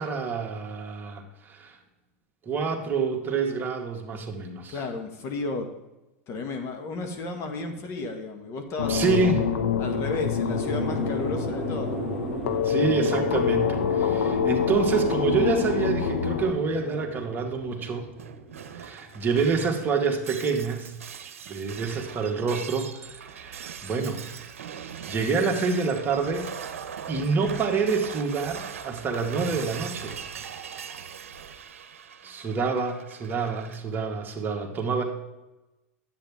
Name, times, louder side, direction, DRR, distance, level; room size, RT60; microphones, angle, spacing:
voice 1, 0.0-1.8 2.5-4.8 8.9-9.5 12.6-18.1 18.7-20.9 21.5-24.2 25.1-26.5 27.1-30.1 32.2-35.0, right 4 dB, 25° right, 1 dB, 1.8 m, -27 dB
voice 2, 4.7-5.7 6.3-9.0 9.8-12.0, left 3 dB, 40° left, 5 dB, 1.8 m, -33 dB
sound 1, 8.8-16.5, left 7 dB, 85° left, 0.8 m, -26 dB
sound 2, 10.4-20.2, right 2 dB, 5° left, 1.7 m, -36 dB
Shatter, 18.2-33.8, right 7 dB, 85° right, 0.8 m, -40 dB
10.5 x 8.4 x 3.6 m, 1.0 s
hypercardioid pair, 110°, 7 cm